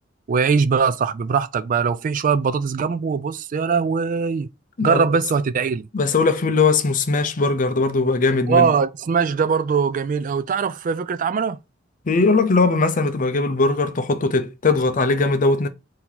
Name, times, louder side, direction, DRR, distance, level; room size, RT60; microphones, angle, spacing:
voice 1, 0.3-4.5 4.8-5.9 8.5-11.6, right 5 dB, 45° right, 0.3 m, -21 dB
voice 2, 5.9-8.7 12.1-15.7, left 3 dB, 45° left, 0.6 m, -19 dB
4.5 x 2.8 x 3.8 m
head